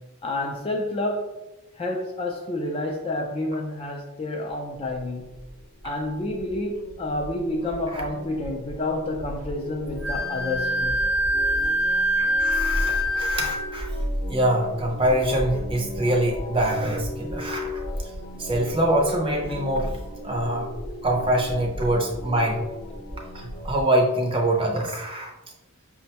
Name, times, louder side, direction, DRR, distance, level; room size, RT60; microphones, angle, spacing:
voice 1, 0.2-1.3 1.8-5.3 5.8-11.0, left 1 dB, 25° left, 0.3 m, -29 dB
sound 1, 4.9-23.9, equal, 45° left, 0.7 m, -35 dB
Wind instrument woodwind instrument, 10.0-13.7, equal, 65° right, 0.6 m, -24 dB
voice 2, 12.2-13.9 14.3-17.8 18.4-20.0 20.2-20.7 21.0-22.6 23.3-25.3, right 1 dB, 25° right, 0.5 m, -24 dB
5.9 x 2.1 x 2.8 m
head